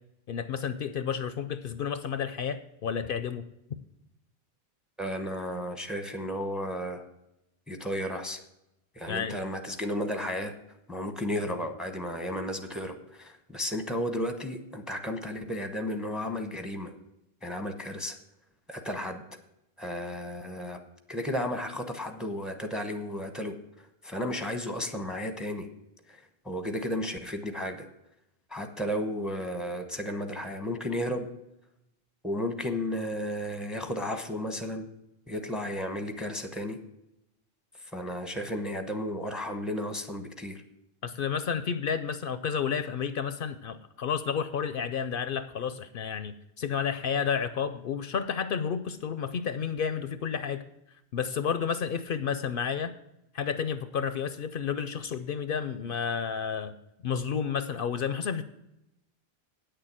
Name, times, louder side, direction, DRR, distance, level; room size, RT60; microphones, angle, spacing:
voice 1, 0.3-3.4 9.1-9.4 41.0-50.6 51.1-52.9 53.3-56.7 57.0-58.4, left 7 dB, 65° left, 11 dB, 0.7 m, -31 dB
voice 2, 5.0-7.0 7.7-8.4 9.0-10.5 10.9-16.9 17.4-18.2 18.7-19.2 19.8-20.8 21.1-23.5 24.0-25.7 26.1-27.9 28.5-31.3 32.2-34.8 35.3-36.8 37.9-40.6, equal, ahead, 6 dB, 0.8 m, -33 dB
9.0 x 6.8 x 7.4 m, 0.86 s
omnidirectional pair, 1.0 m